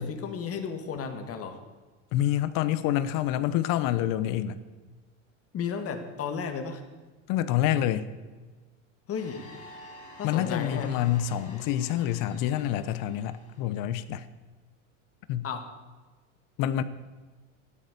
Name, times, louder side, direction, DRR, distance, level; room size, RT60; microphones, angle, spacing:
voice 1, 0.0-1.6 5.5-6.8 9.1-9.4 10.2-10.9 15.4-15.6, left 6 dB, 40° left, 5 dB, 2.3 m, -33 dB
voice 2, 2.1-4.6 7.3-8.1 10.2-14.2 15.3-15.5 16.6-16.8, left 12 dB, 60° left, 14 dB, 1.1 m, -27 dB
digital intelligence, 9.1-13.8, left 2 dB, 20° left, 4.9 m, -49 dB
13.5 x 12.0 x 6.9 m, 1.3 s
supercardioid pair, 105°, 37 cm